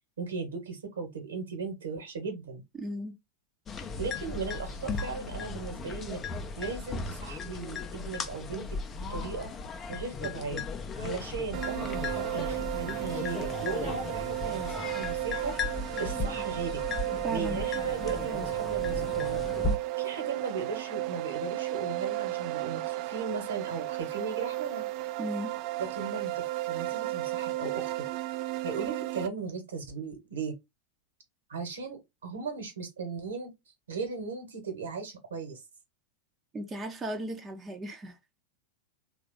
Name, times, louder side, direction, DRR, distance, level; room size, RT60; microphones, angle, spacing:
voice 1, 0.2-2.6 4.0-6.2 6.6-8.8 9.1-9.5 9.9-10.6 11.0-15.5 16.0-16.8 17.3-19.4 20.0-24.8 25.8-28.0 28.6-30.5 31.5-33.5 33.9-35.6, right 4 dB, 65° right, 1.2 m, -37 dB
voice 2, 2.8-3.1 17.2-17.6 25.2-25.5 36.5-38.4, right 1 dB, 15° right, 0.6 m, -36 dB
sound 1, 3.7-19.8, left 4 dB, 20° left, 0.5 m, -36 dB
sound 2, 11.5-29.3, right 17 dB, 45° right, 0.3 m, -34 dB
3.3 x 2.4 x 3.1 m
figure-of-eight pair, 90°, 0 cm